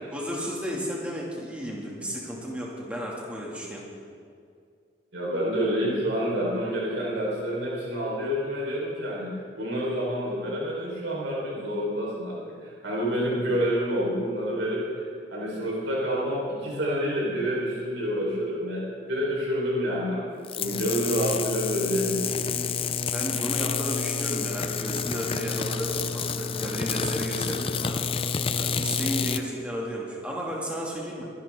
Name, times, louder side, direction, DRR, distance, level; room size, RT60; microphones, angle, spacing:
voice 1, 0.1-3.8 23.1-28.1 28.6-31.3, equal, 5° right, -4 dB, 2.4 m, -33 dB
voice 2, 5.1-14.8 15.3-20.2 20.5-22.7, equal, 75° right, -5 dB, 4.6 m, -28 dB
sound 1, 20.4-29.4, left 6 dB, 30° left, 0.4 m, -29 dB
23.5 x 11.0 x 3.8 m, 2.3 s
head